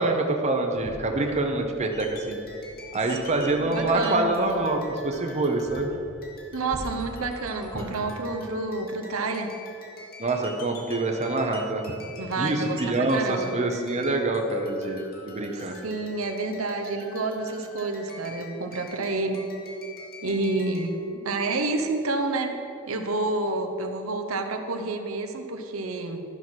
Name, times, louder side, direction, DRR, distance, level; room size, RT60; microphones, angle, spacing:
voice 1, 0.0-2.4 2.9-5.9 10.2-12.0 12.4-15.7, right 2 dB, 35° right, 3 dB, 0.8 m, -26 dB
sound 1, 0.8-7.9, equal, 10° left, 1.7 m, -44 dB
sound 2, 1.9-21.0, left 3 dB, 45° left, 1.8 m, -46 dB
voice 2, 3.2-4.3 6.5-9.5 12.2-13.5 15.5-19.5 20.2-22.5 22.9-26.2, right 3 dB, 80° right, 4 dB, 0.9 m, -29 dB
12.0 x 5.7 x 6.2 m, 2.9 s
head